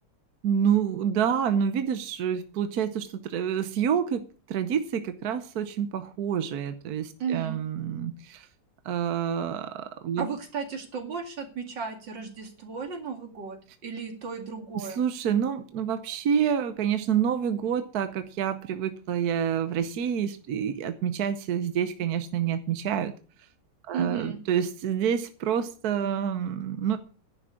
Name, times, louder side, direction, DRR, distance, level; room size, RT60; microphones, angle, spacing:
voice 1, 0.4-8.5 8.9-10.3 14.7-23.1 23.9-27.0, right 8 dB, 65° right, 1.3 m, -28 dB
voice 2, 7.2-7.6 10.2-15.0 23.9-24.4, right 6 dB, 80° right, 2.9 m, -34 dB
11.0 x 6.1 x 8.3 m
omnidirectional pair, 2.0 m